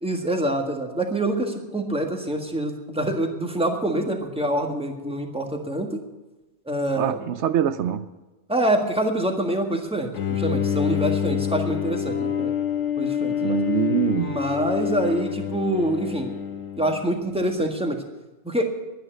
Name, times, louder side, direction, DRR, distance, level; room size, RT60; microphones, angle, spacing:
voice 1, 0.0-6.0 6.7-7.3 8.5-12.5 13.0-13.6 14.2-16.3 16.8-18.0 18.4-18.7, right 1 dB, 5° right, 1.6 m, -26 dB
voice 2, 7.0-8.0 13.4-14.3, right 9 dB, 80° right, 0.9 m, -24 dB
Bowed string instrument, 10.1-17.4, left 9 dB, 85° left, 1.3 m, -27 dB
11.5 x 9.6 x 8.9 m
omnidirectional pair, 1.2 m